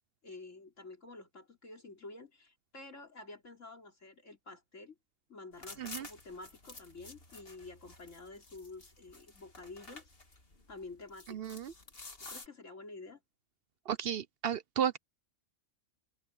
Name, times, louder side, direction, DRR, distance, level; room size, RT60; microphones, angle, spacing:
voice 1, 0.2-5.0 5.3-10.1 10.7-11.7 12.2-13.2, left 3 dB, 85° left, 4.0 m, -50 dB
sound 1, 5.5-12.5, left 3 dB, 50° left, 2.6 m, -51 dB
voice 2, 11.3-11.7 13.9-15.0, right 8 dB, 60° right, 0.8 m, -34 dB
omnidirectional pair, 1.3 m